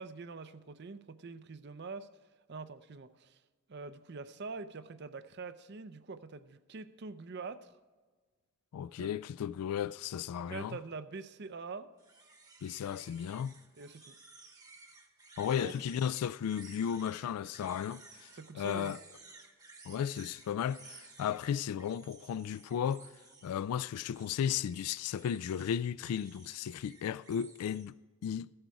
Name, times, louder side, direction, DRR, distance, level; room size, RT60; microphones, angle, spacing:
voice 1, 0.0-2.1 2.5-3.4 3.7-7.7 9.0-9.1 10.5-11.9 13.8-14.1 15.6-15.7 18.3-18.9, right 4 dB, 50° right, 0.5 m, -44 dB
voice 2, 8.7-10.8 12.6-13.5 15.4-19.0 19.9-23.1 23.4-27.9 28.2-28.5, left 8 dB, 85° left, 0.3 m, -35 dB
sound 1, 12.0-27.8, right 3 dB, 15° right, 1.0 m, -56 dB
15.0 x 7.9 x 4.7 m
head